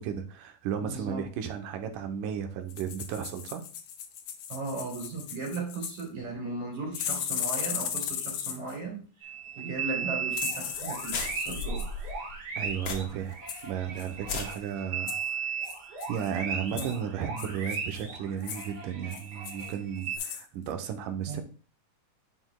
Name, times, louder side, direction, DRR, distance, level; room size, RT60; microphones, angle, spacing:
voice 1, 0.0-3.6 12.6-13.3 13.6-15.2 16.1-21.4, right 8 dB, 90° right, 6 dB, 2.4 m, -34 dB
voice 2, 0.8-1.2 4.5-11.9 16.7-16.9 21.3-21.4, right 3 dB, 65° right, -1 dB, 3.5 m, -37 dB
sound 1, 2.7-6.1 6.9-8.8 10.3-11.9 13.5-13.7 14.0-14.1 14.3-14.6 15.1-15.3 15.6-16.3 16.8-16.9 17.4-18.0 18.4-18.7 19.1-19.7 20.1-20.4 20.7-20.8, left 8 dB, 75° left, 1.6 m, -36 dB
sound 2, 9.2-20.2, right 6 dB, 45° right, 1.3 m, -36 dB
sound 3, 10.3-10.5 10.7-10.8 11.1-13.3 13.7-13.8 14.2-14.5, left 3 dB, 90° left, 1.0 m, -35 dB
9.3 x 6.0 x 2.2 m, 0.37 s
omnidirectional pair, 3.6 m